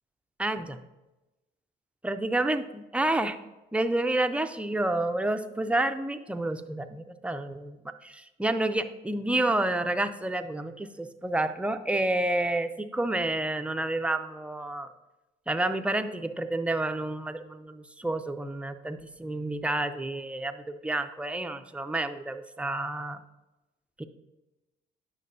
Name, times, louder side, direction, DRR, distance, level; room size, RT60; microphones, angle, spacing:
voice 1, 0.4-0.8 2.0-3.4 3.7-7.8 8.0-14.9 15.5-23.2 24.0-24.1, right 2 dB, 5° right, 8 dB, 0.4 m, -29 dB
9.4 x 5.8 x 2.7 m, 1.0 s
cardioid pair, 90°, 20 cm